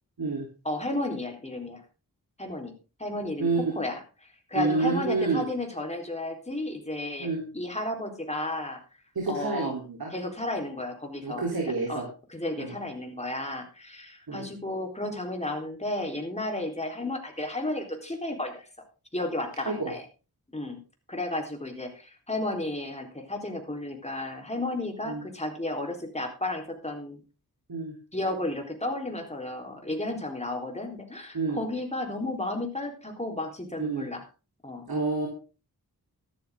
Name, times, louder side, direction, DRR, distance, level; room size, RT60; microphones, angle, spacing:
voice 1, 0.6-1.8 2.4-2.7 3.0-3.5 3.8-7.3 7.5-8.8 9.3-9.8 10.1-18.7 19.1-20.0 20.5-20.8 21.1-27.2 28.1-34.2 34.6-34.8, left 1 dB, 15° left, 3 dB, 4.0 m, -33 dB
voice 2, 4.5-5.4 7.2-7.4 9.2-10.1 11.2-12.0 12.6-12.7 14.3-14.5 19.7-19.9 25.0-25.2 27.7-27.9 31.3-31.6 33.8-34.1 34.9-35.3, right 3 dB, 75° right, 0 dB, 3.7 m, -28 dB
13.5 x 12.5 x 3.8 m, 0.33 s
wide cardioid pair, 60°, 37 cm